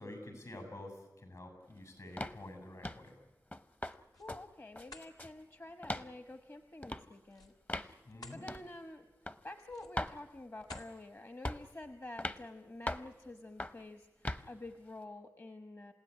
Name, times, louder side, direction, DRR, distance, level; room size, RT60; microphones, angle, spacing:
voice 1, 0.0-3.2 8.0-8.5, left 1 dB, 70° left, 7 dB, 7.6 m, -48 dB
sound 1, 2.2-2.4 2.8-3.1 3.5-4.0 4.3-4.4 4.8-5.4 5.8-6.1 6.8-7.0 7.7-7.9 8.5-8.7 9.3-9.4 10.0-10.2 10.7-11.0 11.4-11.7 12.2-12.4 12.9-13.1 13.6-13.8 14.2-14.5, left 1 dB, 25° left, 0.8 m, -39 dB
sound 2, 3.7-4.3 4.8-5.1 7.2-8.4 8.9-9.1 9.6-10.1 10.6-11.0, left 2 dB, 85° left, 2.1 m, -54 dB
voice 2, 4.1-8.0 8.3-15.9, left 2 dB, 40° left, 8 dB, 1.1 m, -49 dB
27.5 x 16.5 x 9.8 m, 1.1 s
wide cardioid pair, 65°, 7 cm